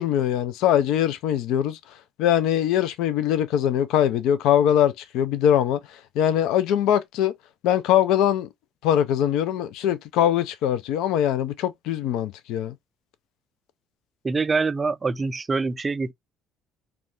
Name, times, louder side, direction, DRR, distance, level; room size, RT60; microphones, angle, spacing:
voice 1, 0.0-1.8 2.2-5.8 6.2-7.3 7.6-8.5 8.8-12.7, left 10 dB, 70° left, 0.3 m, -22 dB
voice 2, 14.2-16.1, right 4 dB, 30° right, 0.3 m, -25 dB
2.4 x 2.2 x 3.4 m
hypercardioid pair, 55°, 0 cm